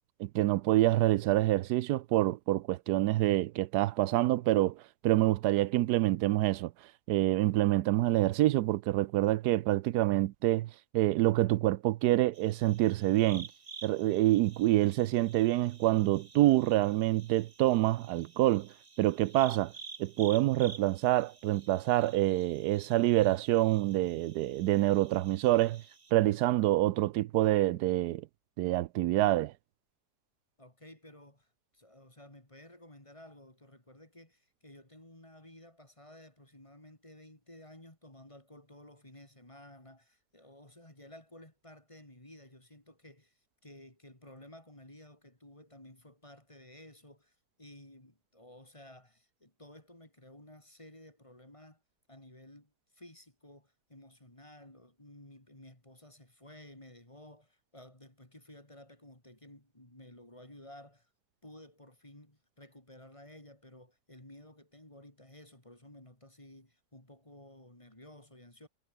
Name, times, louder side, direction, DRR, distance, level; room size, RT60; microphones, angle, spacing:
voice 1, 0.2-6.7 7.1-13.5 13.8-18.7 19.0-19.7 20.0-25.8 26.1-28.3 28.6-29.5, right 15 dB, 85° right, 1.2 m, -27 dB
sound 1, 12.3-26.1, right 5 dB, 30° right, 0.9 m, -52 dB
voice 2, 30.6-51.8 52.1-61.1 61.4-68.7, left 1 dB, 20° left, 3.7 m, -54 dB
omnidirectional pair, 1.7 m